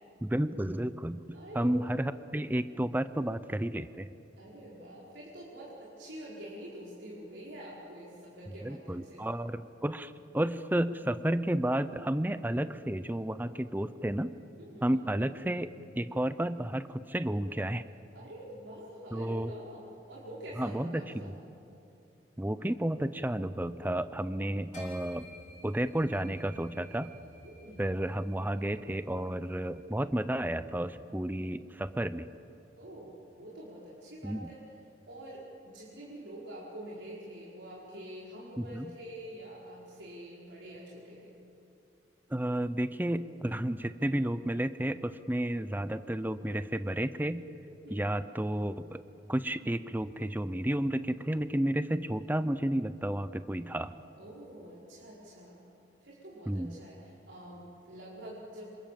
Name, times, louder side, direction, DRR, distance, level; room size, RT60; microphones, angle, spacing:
voice 1, 0.2-4.1 8.6-14.3 14.8-17.8 19.1-19.5 20.6-21.3 22.4-25.3 25.6-27.1 27.8-32.3 34.2-34.5 38.7-38.9 42.3-47.4 47.9-49.0 49.3-54.0 56.5-56.8, right 1 dB, 10° right, 13 dB, 0.6 m, -32 dB
voice 2, 1.3-2.2 4.4-9.3 14.6-15.0 18.1-21.3 27.4-27.9 32.8-34.6 35.1-41.4 47.8-48.0 54.2-55.6 56.0-58.8, right 1 dB, 85° right, -6 dB, 4.9 m, -46 dB
sound 1, 24.7-30.4, equal, 45° left, 7.7 m, -54 dB
27.0 x 27.0 x 7.6 m, 2.7 s
head